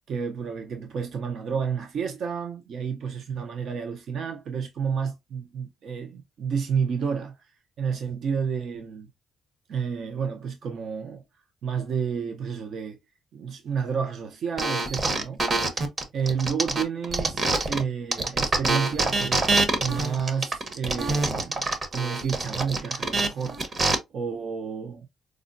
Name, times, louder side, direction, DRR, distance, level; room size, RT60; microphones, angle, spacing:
voice 1, 0.1-7.5 7.8-9.1 9.7-11.2 11.6-13.0 13.3-15.4 15.7-15.8 16.1-25.1, right 6 dB, 65° right, 0.5 m, -30 dB
sound 1, 14.6-17.8 18.1-23.9, right 2 dB, 40° right, 0.8 m, -25 dB
4.8 x 2.1 x 2.5 m
cardioid pair, 90°, 0 cm